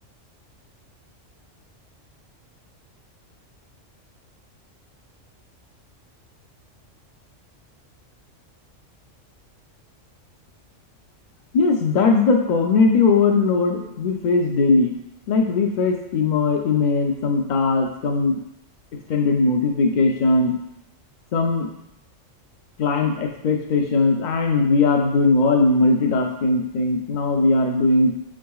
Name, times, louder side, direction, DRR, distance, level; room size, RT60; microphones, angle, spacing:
voice 1, 11.5-14.9 15.3-18.3 19.1-20.5 21.3-21.7 22.8-28.1, left 3 dB, 60° left, 2 dB, 0.5 m, -19 dB
5.3 x 3.7 x 2.3 m, 0.84 s
omnidirectional pair, 1.3 m